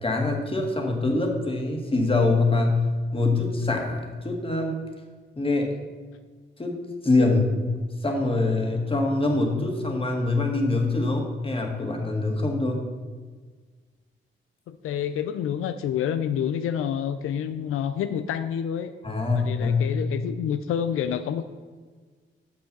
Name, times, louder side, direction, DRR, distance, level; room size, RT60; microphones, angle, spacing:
voice 1, 0.0-2.8 3.1-4.8 5.4-5.7 6.6-7.5 8.0-12.8 19.0-20.0, left 2 dB, 25° left, 2 dB, 1.8 m, -24 dB
voice 2, 14.7-18.9 19.3-21.4, left 9 dB, 85° left, 10 dB, 0.4 m, -28 dB
6.3 x 5.6 x 6.7 m, 1.5 s
cardioid pair, 70°, 21 cm